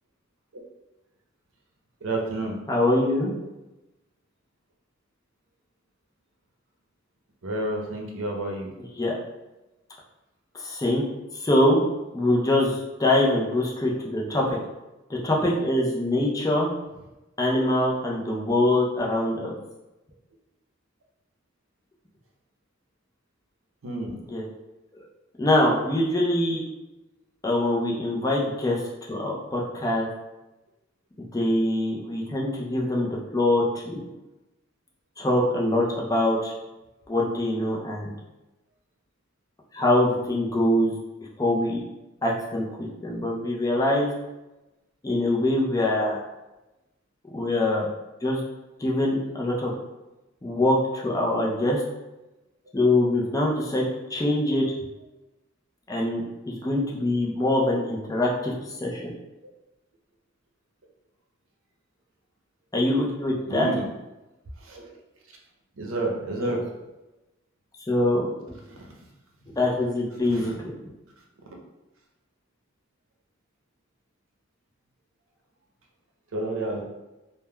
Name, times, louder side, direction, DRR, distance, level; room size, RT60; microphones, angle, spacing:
voice 1, 2.0-2.6 7.4-8.7 23.8-24.2 63.4-63.9 64.6-64.9 65.8-66.6 68.7-69.1 70.2-70.6 76.3-76.8, right 2 dB, 85° right, 0 dB, 0.6 m, -30 dB
voice 2, 2.7-3.3 9.0-9.2 10.6-11.0 11.4-11.8 12.1-14.6 15.1-16.7 17.4-19.5 24.3-24.4 25.4-26.6 27.4-28.8 29.1-30.1 31.3-34.0 35.2-36.5 37.1-38.1 39.7-40.9 41.4-41.8 42.2-44.1 45.0-46.2 47.3-47.9 48.2-48.4 48.8-49.7 50.4-51.8 52.7-53.8 54.1-54.6 55.9-58.5 58.8-59.1 62.7-63.7 66.4-66.5 67.9-68.6 69.6-70.7, left 1 dB, 15° left, -3 dB, 0.4 m, -24 dB
3.3 x 2.1 x 2.2 m, 1.0 s
head